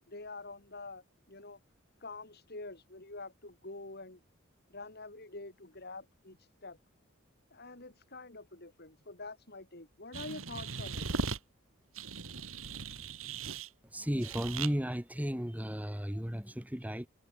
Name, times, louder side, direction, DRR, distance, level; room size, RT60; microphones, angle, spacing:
voice 1, 0.1-1.6 2.0-4.2 4.7-6.8 7.5-11.1, left 3 dB, 50° left, 5.3 m, -46 dB
sound 1, 10.1-11.4 11.9-13.7 14.2-14.7, right 4 dB, 90° right, 2.4 m, -38 dB
voice 2, 13.8-17.1, equal, 10° right, 2.2 m, -34 dB
head